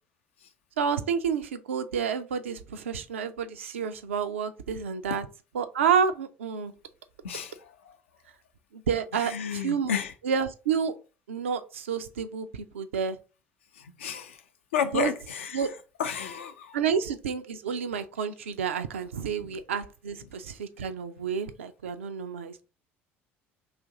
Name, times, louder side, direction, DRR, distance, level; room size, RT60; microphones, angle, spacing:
voice 1, 0.8-5.3 5.5-6.7 8.7-9.9 10.2-10.9 11.3-13.2 14.9-15.1 15.5-15.7 16.7-22.6, right 7 dB, 80° right, 0.3 m, -29 dB
voice 2, 7.2-8.0 9.1-10.1 13.8-14.4 14.7-15.7 16.0-16.8, left 7 dB, 80° left, 0.4 m, -32 dB
2.8 x 2.4 x 3.9 m
hypercardioid pair, 60°, 7 cm